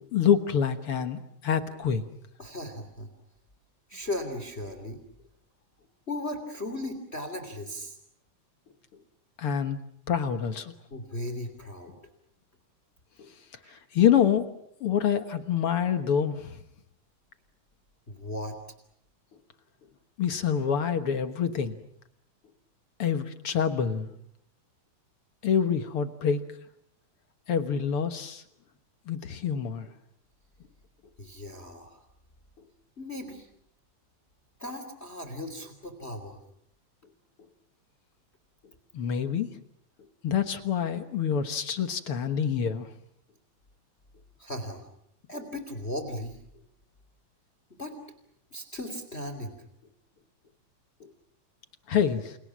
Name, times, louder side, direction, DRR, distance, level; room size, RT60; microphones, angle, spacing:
voice 1, 0.0-2.0 9.4-9.8 10.1-10.7 13.2-13.3 13.7-14.5 14.8-16.6 20.2-21.7 23.0-24.1 25.4-26.4 27.5-28.4 29.1-29.9 38.9-39.5 40.2-42.9 51.0-51.1 51.9-52.4, left 8 dB, 55° left, 9 dB, 1.7 m, -26 dB
voice 2, 2.4-3.1 3.9-5.0 6.1-8.0 10.9-11.9 13.6-13.8 18.1-18.6 31.2-32.0 33.0-33.5 34.6-36.4 44.4-44.9 45.3-46.4 47.8-48.0 48.5-49.6, left 1 dB, 20° left, 8 dB, 3.0 m, -37 dB
29.0 x 29.0 x 6.2 m, 0.71 s
omnidirectional pair, 3.9 m